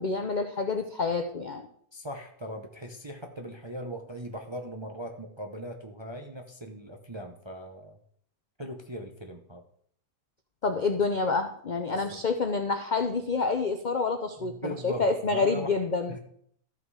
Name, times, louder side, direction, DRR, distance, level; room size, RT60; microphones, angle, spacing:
voice 1, 0.0-1.6 10.6-16.1, left 4 dB, 60° left, 7 dB, 0.4 m, -28 dB
voice 2, 1.9-8.0 8.6-9.6 11.9-12.2 14.4-15.8 16.1-16.2, equal, 30° right, 3 dB, 0.5 m, -39 dB
13.0 x 5.8 x 4.8 m, 0.65 s
omnidirectional pair, 1.8 m